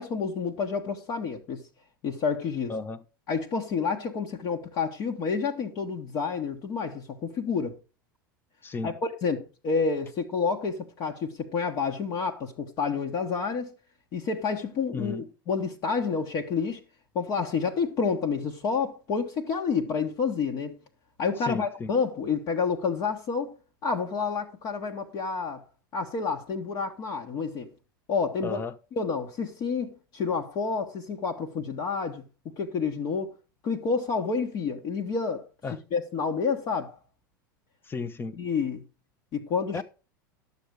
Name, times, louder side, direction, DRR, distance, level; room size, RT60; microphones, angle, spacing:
voice 1, 0.0-1.6 2.0-2.7 3.3-7.8 8.8-13.7 14.1-16.8 17.1-20.7 21.2-23.5 23.8-25.6 25.9-27.7 28.1-28.6 28.9-33.3 33.6-35.5 35.9-37.0 38.4-38.8 39.3-39.8, left 5 dB, 40° left, 1.4 m, -29 dB
voice 2, 2.7-3.0 8.6-8.9 14.9-15.3 21.5-21.9 28.4-28.7 35.6-35.8 37.9-38.4 39.7-39.8, left 4 dB, 20° left, 0.8 m, -33 dB
11.5 x 7.0 x 4.8 m
figure-of-eight pair, 85°, 11 cm